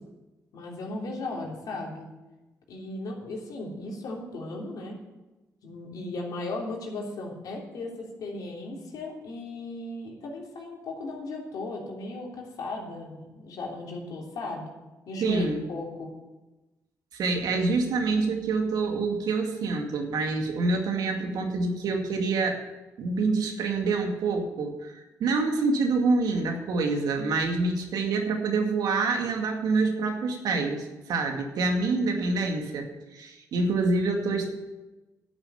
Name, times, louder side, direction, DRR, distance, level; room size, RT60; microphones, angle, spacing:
voice 1, 0.5-2.1 2.7-5.0 5.6-14.7 15.1-16.1, left 2 dB, 70° left, -1 dB, 3.5 m, -36 dB
voice 2, 15.2-15.6 17.1-22.6 23.0-34.5, right 3 dB, 75° right, 3 dB, 2.2 m, -26 dB
11.5 x 7.2 x 9.3 m, 1.1 s
cardioid pair, 70°, 7 cm